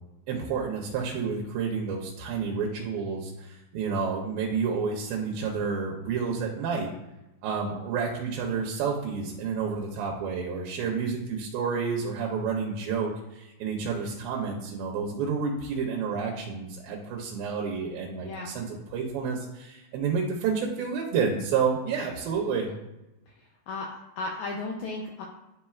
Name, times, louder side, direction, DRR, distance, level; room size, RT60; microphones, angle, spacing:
voice 1, 0.3-6.9 7.4-22.7, right 5 dB, 85° right, -1 dB, 2.6 m, -30 dB
voice 2, 18.2-18.5 23.3-25.3, left 3 dB, 80° left, 0 dB, 1.7 m, -35 dB
10.0 x 4.3 x 2.4 m, 0.98 s
omnidirectional pair, 4.1 m